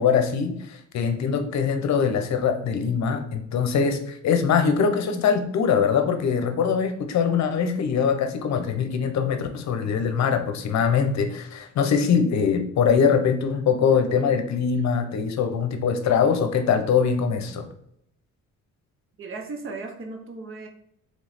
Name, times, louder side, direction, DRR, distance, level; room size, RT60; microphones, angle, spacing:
voice 1, 0.0-17.6, left 6 dB, 65° left, 7 dB, 0.7 m, -22 dB
voice 2, 19.2-20.7, right 3 dB, 45° right, 4 dB, 0.8 m, -36 dB
3.2 x 3.1 x 4.1 m, 0.72 s
cardioid pair, 90°, 30 cm